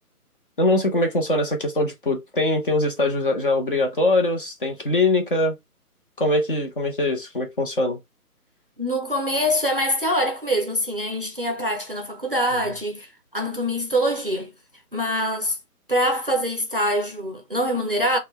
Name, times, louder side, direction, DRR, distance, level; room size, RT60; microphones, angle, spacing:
voice 1, 0.6-5.5 6.2-8.0, left 2 dB, 35° left, 0.8 m, -22 dB
voice 2, 8.8-14.5 14.9-15.6 15.9-18.2, equal, 40° right, 0.5 m, -24 dB
4.1 x 2.2 x 2.9 m
figure-of-eight pair, 145°, 46 cm